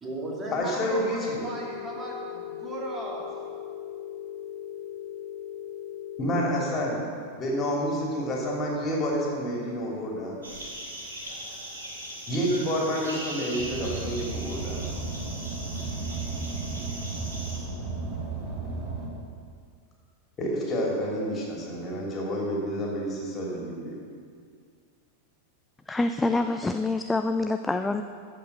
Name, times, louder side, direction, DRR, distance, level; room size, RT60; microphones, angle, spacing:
voice 1, 0.0-3.4, right 1 dB, 20° right, -3 dB, 2.5 m, -36 dB
voice 2, 0.5-1.4 6.2-7.0 7.4-10.4 12.3-14.8 20.4-23.9, equal, 25° left, -3 dB, 2.9 m, -29 dB
Telephone, 1.3-6.3, left 11 dB, 85° right, 2.7 m, -39 dB
sound 1, 10.4-17.6, right 1 dB, 70° right, 3.0 m, -39 dB
Car, 13.6-19.1, right 3 dB, 40° right, 2.0 m, -34 dB
voice 3, 25.9-28.0, left 2 dB, 10° left, 8 dB, 0.3 m, -26 dB
13.5 x 5.3 x 6.7 m, 2.1 s
figure-of-eight pair, 90°, 0 cm